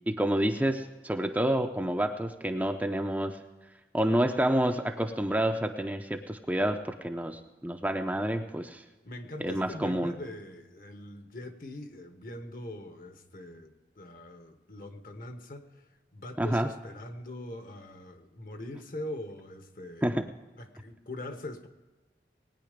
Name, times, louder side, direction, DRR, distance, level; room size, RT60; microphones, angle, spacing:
voice 1, 0.1-3.4 3.9-8.8 9.4-10.1 16.4-16.7 20.0-20.3, right 1 dB, 10° right, 5 dB, 0.6 m, -28 dB
voice 2, 9.0-20.1 20.6-21.7, left 1 dB, 50° left, 7 dB, 1.3 m, -42 dB
20.0 x 9.6 x 5.1 m, 1.2 s
head